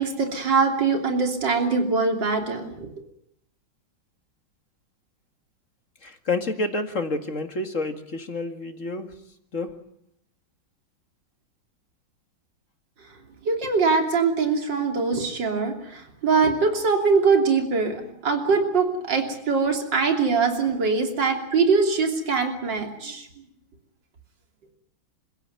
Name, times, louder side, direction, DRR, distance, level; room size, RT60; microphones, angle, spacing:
voice 1, 0.0-2.9 13.4-23.3, right 4 dB, 65° right, 4 dB, 3.8 m, -22 dB
voice 2, 6.0-9.1 9.5-9.7, left 2 dB, 40° left, 6 dB, 2.3 m, -29 dB
28.0 x 16.5 x 9.3 m, 0.74 s
omnidirectional pair, 2.1 m